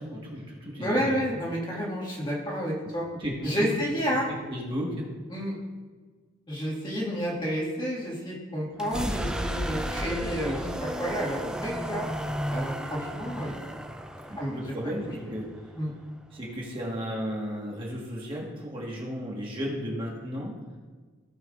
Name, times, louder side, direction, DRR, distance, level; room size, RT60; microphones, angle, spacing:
voice 1, 0.0-1.2 2.8-2.9 3.2-3.7 4.3-5.1 10.2-10.5 14.3-15.5 16.3-20.5, equal, 25° right, -4 dB, 1.6 m, -34 dB
voice 2, 0.8-3.0 3.4-4.3 5.3-5.5 6.5-12.1 12.5-13.5 14.4-14.6 15.8-15.9, equal, 20° left, -4 dB, 2.0 m, -30 dB
sound 1, 8.7-16.5, equal, 5° right, 0.4 m, -34 dB
16.5 x 5.9 x 2.5 m, 1.4 s
head